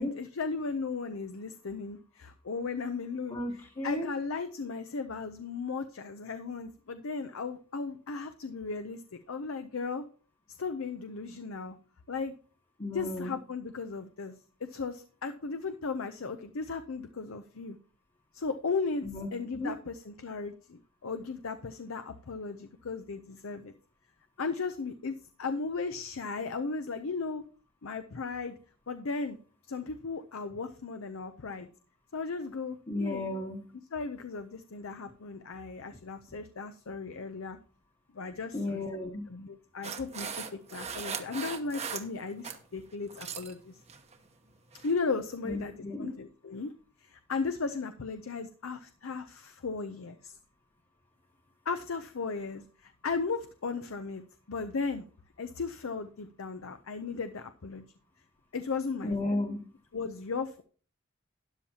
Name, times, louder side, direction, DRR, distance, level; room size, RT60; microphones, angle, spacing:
voice 1, 0.0-3.4 3.8-10.1 10.6-11.8 12.1-12.3 12.9-14.3 14.6-17.8 18.3-19.1 19.3-23.7 24.4-27.4 27.8-28.6 28.9-29.4 29.7-31.7 32.1-33.2 33.9-37.6 38.1-38.8 39.3-43.8 44.8-46.7 47.0-50.4 51.7-54.2 54.5-55.0 55.4-57.8 58.5-59.4 59.9-60.6, left 4 dB, 75° left, 9 dB, 0.6 m, -36 dB
voice 2, 3.3-4.1 12.8-13.3 19.0-19.3 19.5-19.7 32.9-33.7 38.5-39.3 45.4-46.1 59.0-59.6, left 2 dB, 30° left, 0 dB, 1.2 m, -33 dB
sound 1, 39.8-42.6 42.9-43.5 43.9-44.2 44.7-44.9, right 6 dB, 30° right, 0.9 m, -39 dB
12.5 x 10.0 x 2.9 m, 0.41 s
head